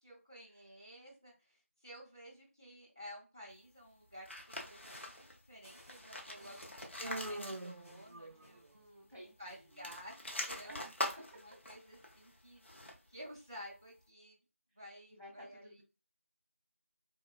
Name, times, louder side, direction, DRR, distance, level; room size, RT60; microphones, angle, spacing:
voice 1, 0.0-8.8 9.2-10.1 10.4-10.7 11.1-12.6 13.1-14.4 14.8-15.8, equal, 15° right, -6 dB, 0.6 m, -53 dB
sound 1, 4.2-5.4 5.8-8.0 8.3-8.4 9.6-13.2, left 1 dB, 55° left, 0.7 m, -44 dB
sound 2, 4.8-8.9 9.2-10.2, equal, 70° left, 1.7 m, -58 dB
voice 2, 6.4-6.7 8.1-10.0 10.6-11.3 15.1-15.8, equal, 10° left, -12 dB, 0.9 m, -56 dB
Human voice, 7.0-8.7, right 2 dB, 90° right, 0.4 m, -44 dB
3.9 x 2.1 x 2.3 m, 0.30 s
figure-of-eight pair, 175°, 8 cm